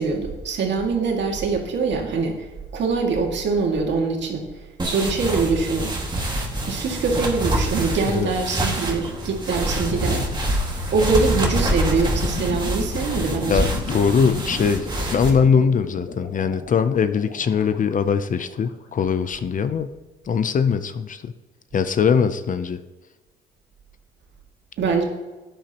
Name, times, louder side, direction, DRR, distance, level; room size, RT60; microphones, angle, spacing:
voice 1, 0.0-2.5 2.7-4.5 4.9-5.9 6.7-10.2 10.9-13.6 24.8-25.0, right 4 dB, 65° right, 1 dB, 2.1 m, -23 dB
sound 1, 4.8-15.3, right 1 dB, 20° right, 1.9 m, -26 dB
sound 2, 9.8-18.7, left 2 dB, 60° left, 2.0 m, -34 dB
voice 2, 13.5-19.9 20.3-21.3 21.7-22.8, left 6 dB, 40° left, 12 dB, 0.6 m, -21 dB
12.0 x 8.8 x 3.0 m, 1.2 s
cardioid pair, 90°, 20 cm